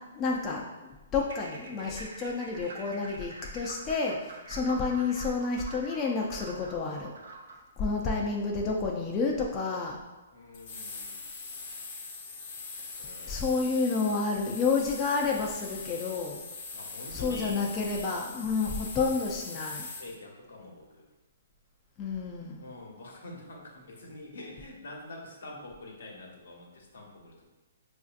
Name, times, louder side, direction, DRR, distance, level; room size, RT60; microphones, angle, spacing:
voice 1, 0.1-7.1 7.8-10.0 13.2-16.4 17.1-19.9 22.0-22.6, left 4 dB, 20° left, -2 dB, 0.4 m, -30 dB
sound 1, 1.2-7.7, right 3 dB, 80° right, 0.6 m, -46 dB
voice 2, 7.8-8.2 10.3-11.2 13.0-13.7 16.7-17.6 20.0-21.1 22.6-27.5, left 2 dB, 80° left, -1 dB, 1.0 m, -46 dB
sound 2, 10.5-20.1, left 4 dB, 50° left, 0.7 m, -42 dB
4.9 x 2.6 x 2.4 m, 1.1 s
hypercardioid pair, 150°, 0 cm